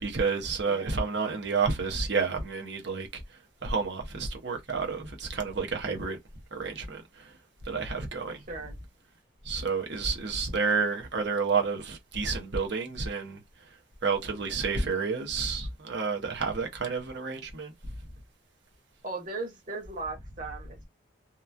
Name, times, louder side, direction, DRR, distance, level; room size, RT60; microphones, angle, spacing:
voice 1, 0.0-3.2 3.6-6.2 6.5-7.3 7.6-8.4 9.4-13.4 14.0-17.7, right 4 dB, 60° right, 0.8 m, -30 dB
voice 2, 0.7-1.0 8.5-8.7 19.0-20.9, right 3 dB, 40° right, 1.4 m, -37 dB
2.9 x 2.3 x 2.4 m
head